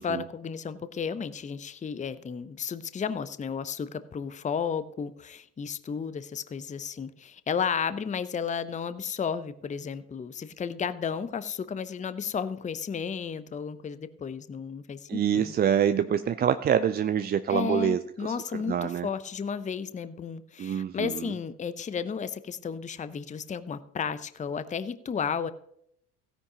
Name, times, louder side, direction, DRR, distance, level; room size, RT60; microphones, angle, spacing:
voice 1, 0.0-15.5 17.5-25.5, left 6 dB, 15° left, 14 dB, 0.6 m, -33 dB
voice 2, 15.1-18.4 18.7-19.1 20.6-21.3, right 9 dB, 25° right, 11 dB, 0.4 m, -26 dB
16.0 x 9.9 x 2.9 m, 0.72 s
hypercardioid pair, 60°, 46 cm